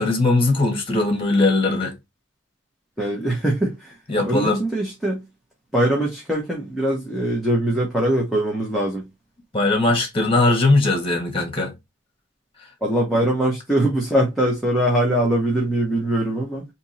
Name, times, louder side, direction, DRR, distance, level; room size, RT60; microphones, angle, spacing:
voice 1, 0.0-1.9 4.1-4.6 9.5-11.7, left 2 dB, 30° left, 1.5 m, -19 dB
voice 2, 3.0-3.9 4.2-5.2 5.7-9.0 12.8-16.7, right 1 dB, ahead, 1.1 m, -22 dB
3.5 x 2.9 x 4.2 m
head